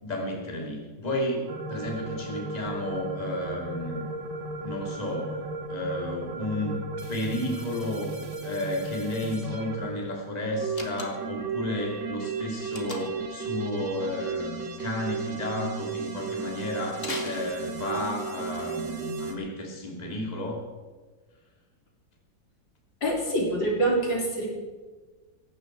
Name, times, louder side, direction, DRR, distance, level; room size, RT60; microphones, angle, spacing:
voice 1, 0.0-4.0 4.6-6.8 7.1-8.1 8.4-20.6, left 1 dB, 20° left, 0 dB, 2.8 m, -32 dB
sound 1, 1.5-9.9 10.4-19.3, right 4 dB, 65° right, 2.2 m, -35 dB
Slam, 10.7-11.4 12.7-13.3 17.0-18.1, left 3 dB, 40° left, 2.3 m, -38 dB
voice 2, 23.0-24.5, right 1 dB, 70° left, -2 dB, 4.5 m, -25 dB
18.0 x 16.0 x 4.6 m, 1.3 s
omnidirectional pair, 2.1 m